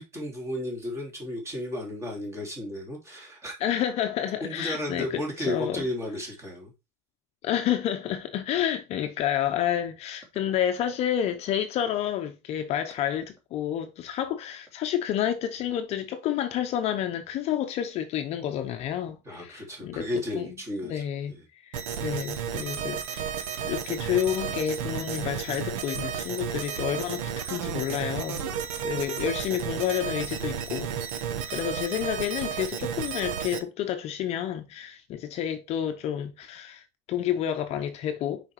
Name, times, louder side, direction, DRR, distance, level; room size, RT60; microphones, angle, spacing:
voice 1, 0.0-3.5 4.4-6.7 19.2-21.0 21.3-21.4, left 1 dB, 15° right, 3.1 m, -33 dB
voice 2, 3.6-5.9 7.4-20.1 20.3-20.5 20.8-23.3 23.6-28.4 28.8-30.9 31.5-38.5, left 10 dB, 40° left, 0.8 m, -30 dB
sound 1, 21.7-33.6, right 8 dB, 85° right, 1.4 m, -33 dB
6.3 x 5.2 x 4.7 m
cardioid pair, 160°, 16 cm